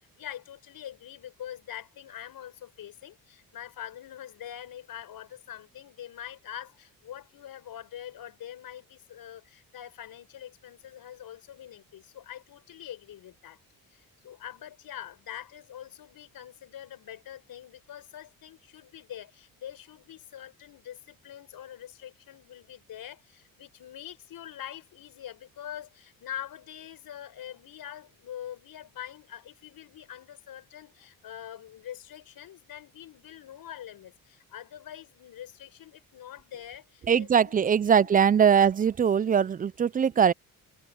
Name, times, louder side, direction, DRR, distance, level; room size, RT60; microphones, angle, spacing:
voice 1, 0.2-13.6 13.9-37.6 37.9-38.2 38.6-38.7, left 11 dB, 70° left, 5.4 m, -44 dB
voice 2, 37.1-40.3, right 7 dB, 25° right, 0.4 m, -21 dB
open air
cardioid pair, 100°, 36 cm